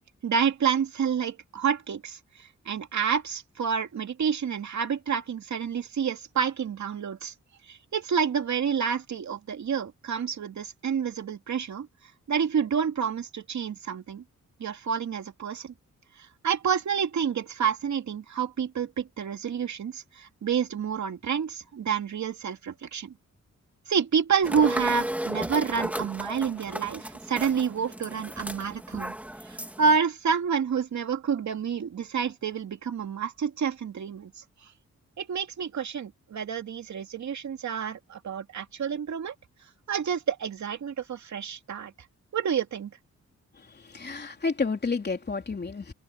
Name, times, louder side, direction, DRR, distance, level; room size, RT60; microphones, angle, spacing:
voice 1, 0.2-2.2 2.7-7.3 7.7-11.9 12.3-14.2 14.6-15.7 16.4-23.1 23.9-29.1 29.5-34.3 35.2-39.3 39.9-41.9 42.3-42.9, right 7 dB, 70° right, 2.5 m, -28 dB
sound 1, 24.4-30.0, right 1 dB, 5° right, 2.4 m, -34 dB
voice 2, 43.6-45.9, left 4 dB, 35° left, 3.5 m, -31 dB
wide cardioid pair, 115°, 29 cm